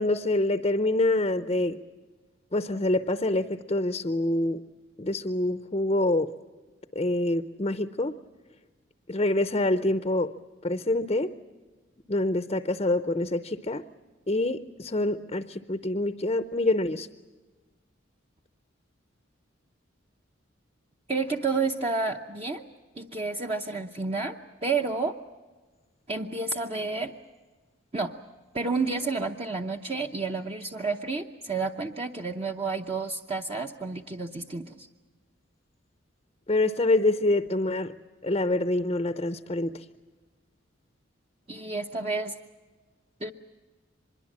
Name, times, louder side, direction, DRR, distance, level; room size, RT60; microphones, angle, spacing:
voice 1, 0.0-1.8 2.5-4.6 5.0-6.3 6.9-8.1 9.1-10.3 10.6-11.3 12.1-13.8 14.3-17.1 36.5-37.9 38.2-39.8, left 2 dB, 30° left, 10 dB, 0.6 m, -26 dB
voice 2, 21.1-22.7 22.9-25.2 26.1-27.1 27.9-28.1 28.5-34.9 41.5-42.3 43.2-43.3, right 4 dB, 30° right, 2 dB, 0.8 m, -30 dB
25.0 x 22.0 x 7.4 m, 1.3 s
head